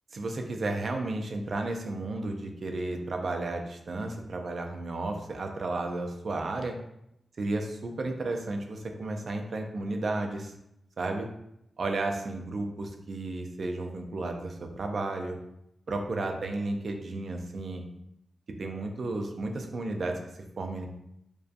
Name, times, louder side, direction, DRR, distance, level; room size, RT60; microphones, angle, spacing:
voice 1, 0.1-6.8 7.4-10.5 11.0-11.3 11.8-15.4 15.9-17.8 18.6-20.2 20.6-20.9, right 2 dB, 50° right, 3 dB, 0.3 m, -33 dB
2.5 x 2.2 x 2.4 m, 0.81 s
wide cardioid pair, 150°, 0 cm